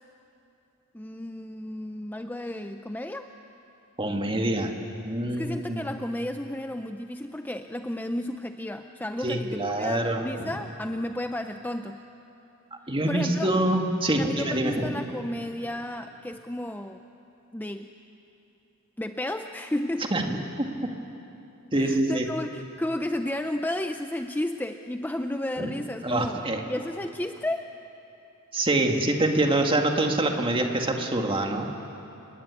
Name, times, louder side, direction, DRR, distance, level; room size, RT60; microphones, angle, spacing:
voice 1, 0.9-3.3 5.4-12.0 13.1-13.5 14.2-17.0 17.5-17.9 19.0-20.1 21.7-26.4 26.7-27.7, left 1 dB, 10° left, 7 dB, 0.5 m, -32 dB
voice 2, 4.0-4.7 5.0-5.9 9.2-10.5 12.7-15.0 20.1-20.4 21.7-22.3 25.6-25.7 26.0-26.6 28.5-31.7, right 1 dB, 25° right, 3 dB, 2.1 m, -25 dB
28.5 x 21.0 x 8.4 m, 2.9 s
head